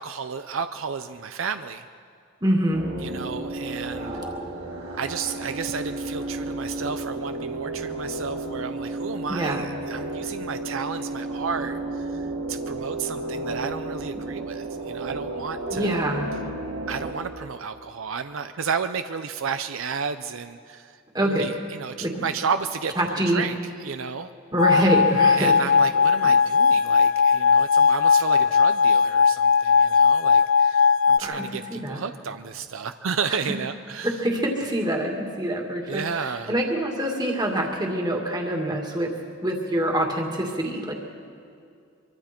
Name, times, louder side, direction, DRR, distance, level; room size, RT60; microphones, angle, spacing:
voice 1, 0.0-1.8 3.0-4.2 5.0-16.0 16.9-21.0 21.3-22.9 23.3-24.3 25.4-34.2 35.9-36.5, right 6 dB, 70° right, 10 dB, 0.6 m, -32 dB
voice 2, 2.4-2.8 4.1-4.2 9.3-9.6 15.7-16.3 21.1-21.5 22.0-22.3 23.0-23.4 24.5-25.5 31.2-31.4 31.7-32.0 33.3-33.4 34.0-39.1 39.4-40.9, right 1 dB, 20° right, 1 dB, 2.2 m, -25 dB
sound 1, 2.7-17.1, right 2 dB, 90° right, 4.4 m, -32 dB
sound 2, 24.6-31.2, left 6 dB, 75° left, 0.5 m, -18 dB
24.5 x 24.0 x 4.5 m, 2.3 s
head